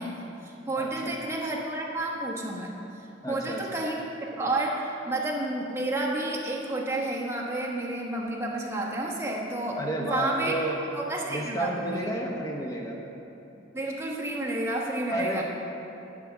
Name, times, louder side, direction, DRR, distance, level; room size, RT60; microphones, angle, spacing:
voice 1, 0.0-2.8 3.3-9.8 10.1-10.5 10.9-12.1 13.7-15.4, right 2 dB, 15° right, -2 dB, 1.1 m, -30 dB
voice 2, 0.8-1.2 3.2-3.8 9.8-10.8 11.3-13.0 15.1-15.4, right 1 dB, 20° left, 0 dB, 0.8 m, -31 dB
10.5 x 5.0 x 7.3 m, 2.9 s
head